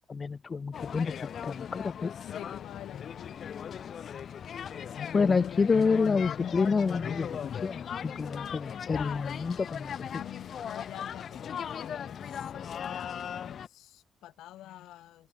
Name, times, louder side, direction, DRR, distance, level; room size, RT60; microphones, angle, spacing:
voice 1, 0.1-2.1 5.1-10.1, left 5 dB, 35° left, 0.7 m, -28 dB
sound 1, 0.7-13.7, left 8 dB, 60° left, 0.9 m, -38 dB
voice 2, 2.2-3.4 10.1-15.3, left 14 dB, 85° left, 2.2 m, -48 dB
open air
cardioid pair, 90°, 0 cm